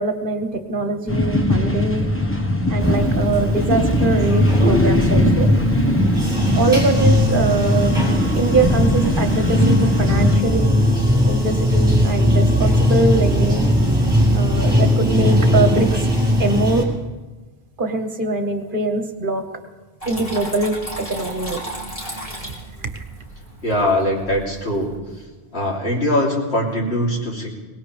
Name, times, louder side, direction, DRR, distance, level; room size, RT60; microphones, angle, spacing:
voice 1, 0.0-2.1 2.7-5.5 6.6-7.9 8.3-10.7 11.2-13.7 14.3-16.1 16.4-16.8 17.8-19.4 20.1-20.7 21.1-21.6 22.3-23.0, right 2 dB, 55° right, 6 dB, 1.3 m, -22 dB
sound 1, 1.1-10.4, left 1 dB, 10° left, 1.2 m, -20 dB
Bathtub (filling or washing), 2.8-16.8, equal, 20° right, 3.2 m, -19 dB
Water tap faucet / Trickle dribble, 20.0-25.0, right 1 dB, 35° left, 3.7 m, -34 dB
voice 2, 23.6-24.9 25.5-27.5, left 1 dB, 75° left, -3 dB, 3.4 m, -21 dB
22.5 x 18.5 x 3.4 m, 1.3 s
omnidirectional pair, 1.1 m